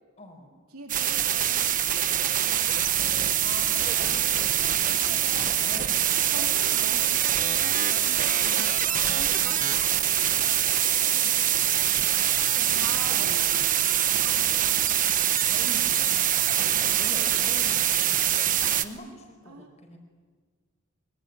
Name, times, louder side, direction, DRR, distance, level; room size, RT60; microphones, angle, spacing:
voice 1, 0.2-0.5 3.4-6.6 8.8-10.0 12.5-13.4 15.4-16.3 16.6-18.5 18.8-20.0, left 1 dB, 30° left, 4 dB, 5.1 m, -44 dB
voice 2, 0.7-3.0 6.3-8.8 9.1-11.8 12.7-15.0 16.8-17.1 19.4-19.8, right 2 dB, 85° right, 2 dB, 3.4 m, -44 dB
sound 1, 0.9-18.8, right 11 dB, 40° right, 1.2 m, -24 dB
24.5 x 24.5 x 9.8 m, 1.5 s
head